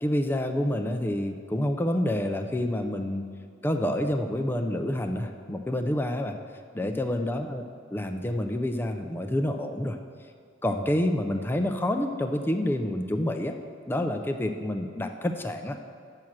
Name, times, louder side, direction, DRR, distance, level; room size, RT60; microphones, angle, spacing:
voice 1, 0.0-3.2 3.6-6.4 6.7-7.7 7.9-10.0 10.6-13.6 13.9-15.8, left 1 dB, 10° left, 5 dB, 0.4 m, -28 dB
7.7 x 6.1 x 7.2 m, 2.2 s
head